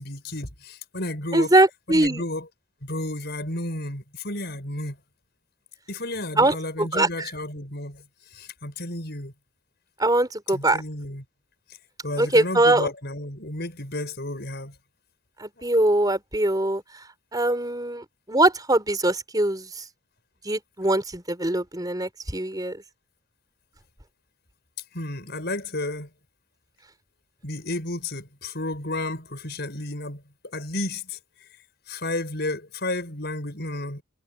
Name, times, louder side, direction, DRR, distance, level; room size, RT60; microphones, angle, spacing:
voice 1, 0.0-1.5 1.9-2.5 2.8-5.0 5.9-8.0 8.3-9.3 10.5-11.2 12.0-14.7 24.9-26.1 27.4-30.2 30.5-31.2 31.9-34.0, left 2 dB, 50° left, 7.4 m, -32 dB
voice 2, 1.3-2.2 6.4-7.1 10.0-10.8 12.2-12.9 15.4-16.8 17.3-19.7 20.4-22.8, right 2 dB, 20° right, 4.6 m, -22 dB
head